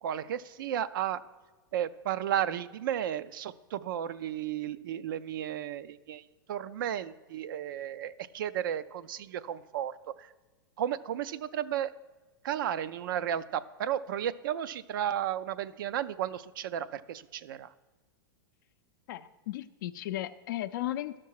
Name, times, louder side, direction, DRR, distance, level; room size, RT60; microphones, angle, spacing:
voice 1, 0.0-1.2 1.7-10.3 10.8-11.9 12.4-17.7, right 10 dB, 65° right, 14 dB, 0.4 m, -33 dB
voice 2, 19.1-21.2, left 14 dB, 60° left, 11 dB, 0.5 m, -35 dB
12.5 x 5.9 x 4.7 m, 1.3 s
hypercardioid pair, 105°, 12 cm